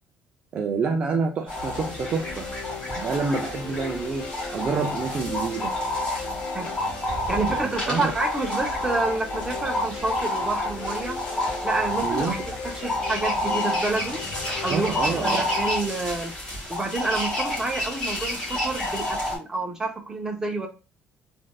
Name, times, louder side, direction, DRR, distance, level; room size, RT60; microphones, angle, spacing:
voice 1, 0.5-2.5 3.0-5.7 7.3-7.6 7.9-8.1 12.0-12.3 14.7-15.4, right 4 dB, 35° right, 2 dB, 0.4 m, -28 dB
sound 1, 1.5-16.8, left 5 dB, 90° left, 0.6 m, -38 dB
sound 2, 1.5-19.4, left 1 dB, 20° left, 1.8 m, -29 dB
voice 2, 7.1-11.2 11.6-14.2 14.6-16.3 16.7-20.7, right 3 dB, 15° right, 2 dB, 0.7 m, -29 dB
3.3 x 2.5 x 2.3 m, 0.31 s
cardioid pair, 140°, 4 cm